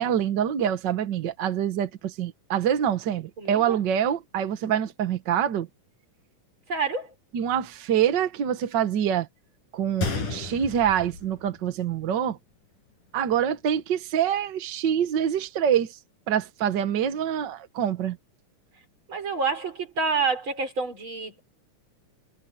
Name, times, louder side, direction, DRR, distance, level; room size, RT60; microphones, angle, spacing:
voice 1, 0.0-5.7 7.3-9.3 9.7-12.4 13.1-16.0 16.3-18.2, right 9 dB, 60° right, 1.1 m, -25 dB
voice 2, 3.4-3.8 6.7-7.1 19.1-21.4, right 4 dB, 40° right, 6.1 m, -28 dB
Gunshot gunfire, 10.0-12.0 12.3-12.4 13.1-13.3, left 4 dB, 85° left, 6.9 m, -32 dB
omnidirectional pair, 3.6 m